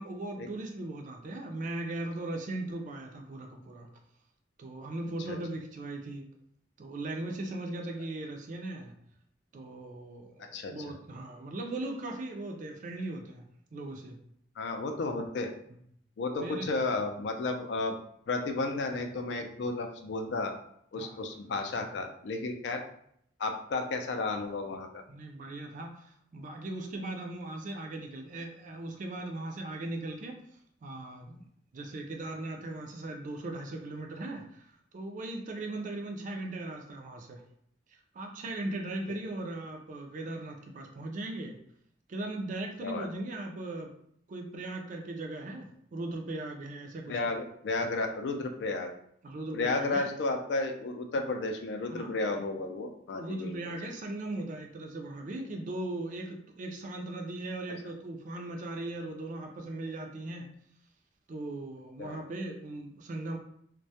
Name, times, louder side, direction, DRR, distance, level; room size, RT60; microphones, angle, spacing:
voice 1, 0.0-3.9 4.6-6.3 6.8-8.9 9.5-13.4 13.7-14.2 15.7-15.8 16.4-16.7 20.9-21.2 25.1-30.4 30.8-31.5 31.7-34.7 34.9-37.4 38.1-41.6 42.1-43.9 44.3-47.3 49.2-50.1 51.9-52.2 53.1-60.5 61.3-63.4, right 2 dB, 45° right, 3 dB, 0.4 m, -38 dB
voice 2, 14.6-15.5 16.2-17.9 18.3-20.5 20.9-22.8 23.4-25.0 42.8-43.1 47.1-48.9 49.5-53.5 53.9-54.0 62.0-62.2, left 3 dB, 65° left, 5 dB, 0.3 m, -33 dB
2.2 x 2.0 x 2.7 m, 0.68 s
head